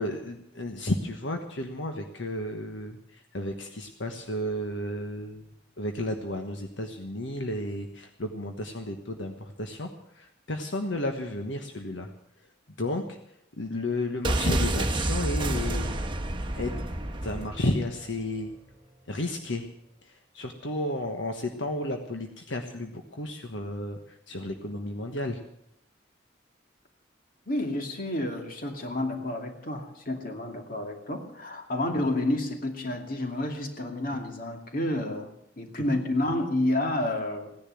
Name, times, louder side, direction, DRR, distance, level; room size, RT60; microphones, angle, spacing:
voice 1, 0.0-5.5 5.8-12.1 12.8-13.2 13.5-16.1 16.5-16.7 17.2-18.5 19.1-19.6 20.0-25.4 34.1-34.2 35.9-36.0, left 1 dB, 75° left, 4 dB, 1.4 m, -32 dB
sound 1, 14.2-18.0 18.3-18.4, right 1 dB, 25° right, 1.2 m, -29 dB
voice 2, 27.5-35.3 35.6-37.6, left 1 dB, 50° left, 4 dB, 2.5 m, -30 dB
17.0 x 10.5 x 7.7 m, 0.75 s
head